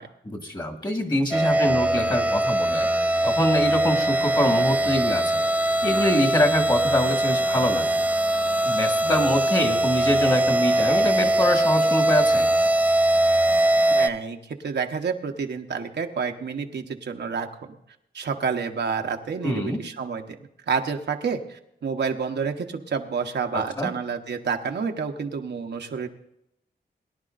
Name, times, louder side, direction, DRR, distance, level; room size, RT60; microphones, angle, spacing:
voice 1, 0.2-2.9 3.2-5.4 5.8-8.0 8.7-12.5 19.4-19.8 23.5-23.9, left 1 dB, 25° left, 3 dB, 1.8 m, -24 dB
sound 1, 1.3-14.1, right 1 dB, 10° right, 0.5 m, -22 dB
voice 2, 13.9-17.8 18.1-20.4 20.7-26.1, right 5 dB, 85° right, 4 dB, 1.0 m, -29 dB
22.0 x 11.0 x 2.5 m, 0.78 s
wide cardioid pair, 135°, 17 cm